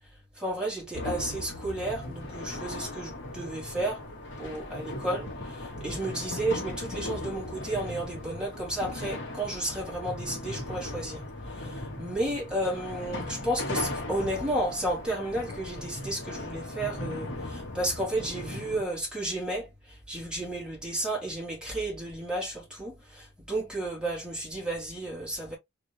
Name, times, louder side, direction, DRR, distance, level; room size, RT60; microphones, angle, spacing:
voice 1, 0.4-4.0 4.4-11.2 11.6-19.7 20.1-25.6, right 1 dB, 5° right, 3.0 m, -32 dB
sound 1, 0.9-18.8, left 2 dB, 60° left, 2.5 m, -38 dB
4.8 x 4.5 x 2.4 m
head